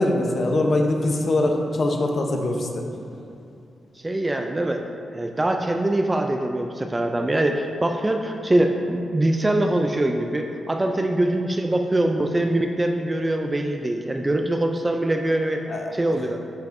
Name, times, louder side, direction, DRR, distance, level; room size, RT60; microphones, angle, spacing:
voice 1, 0.0-2.8 15.7-15.9, left 1 dB, 40° left, 2 dB, 0.7 m, -22 dB
voice 2, 4.0-4.8 5.1-15.6 15.9-16.4, right 1 dB, 15° right, 4 dB, 0.3 m, -23 dB
10.0 x 5.9 x 2.6 m, 2.6 s
wide cardioid pair, 155°, 0 cm